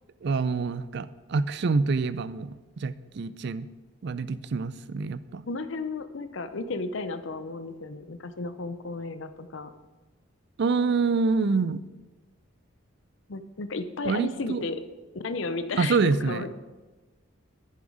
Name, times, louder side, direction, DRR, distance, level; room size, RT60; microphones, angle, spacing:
voice 1, 0.2-3.7 4.0-5.4 10.6-11.8 14.0-14.6 15.8-16.4, right 4 dB, 55° right, 15 dB, 0.4 m, -26 dB
voice 2, 5.5-9.7 13.3-14.8 15.1-16.5, left 3 dB, 65° left, 11 dB, 0.6 m, -33 dB
10.0 x 7.2 x 4.9 m, 1.2 s
head